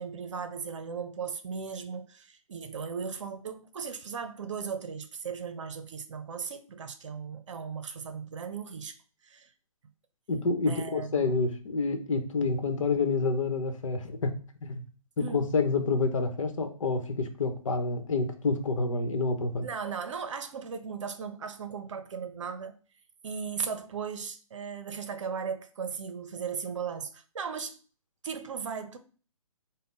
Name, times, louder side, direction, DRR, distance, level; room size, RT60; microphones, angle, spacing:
voice 1, 0.0-9.0 9.2-9.5 10.7-11.2 15.2-15.5 19.6-22.7 23.2-27.8 28.2-29.0, right 6 dB, 60° right, 0.7 m, -37 dB
voice 2, 10.3-14.8 15.2-19.7, left 3 dB, 60° left, 1.0 m, -28 dB
5.2 x 2.3 x 3.9 m
figure-of-eight pair, 140°, 18 cm